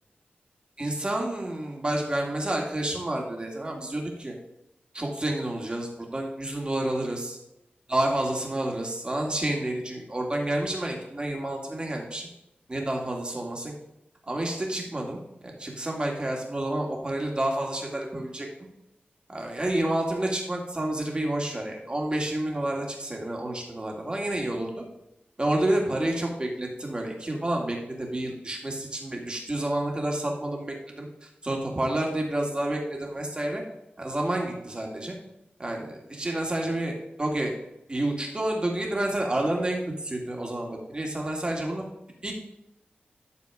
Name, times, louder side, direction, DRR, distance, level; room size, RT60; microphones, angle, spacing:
voice 1, 0.8-4.3 4.9-7.4 7.9-12.3 12.7-13.7 14.3-18.5 19.3-24.8 25.4-33.6 34.0-35.2 35.6-37.6 37.9-41.8 42.2-42.4, right 1 dB, 25° right, 0 dB, 2.1 m, -29 dB
12.0 x 4.4 x 4.9 m, 0.86 s
wide cardioid pair, 105°, 4 cm